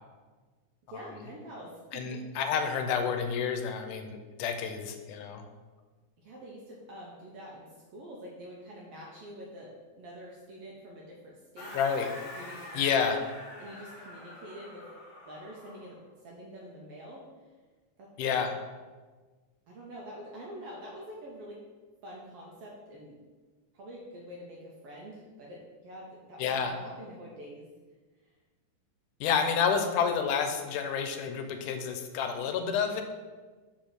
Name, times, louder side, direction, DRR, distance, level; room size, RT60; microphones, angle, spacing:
voice 1, 0.9-2.2 6.2-7.6 7.9-9.7 10.0-11.7 12.3-13.2 13.6-14.8 15.2-17.2 18.0-18.4 19.7-21.6 22.0-23.2 23.7-27.7, equal, 70° right, -3 dB, 1.5 m, -46 dB
voice 2, 1.9-5.4 11.7-12.1 12.7-13.2 18.2-18.5 26.4-26.8 29.2-33.0, left 6 dB, 85° left, 6 dB, 2.2 m, -29 dB
sound 1, 11.6-16.0, left 1 dB, 35° left, 1.6 m, -46 dB
5.1 x 4.4 x 6.1 m, 1.4 s
omnidirectional pair, 3.6 m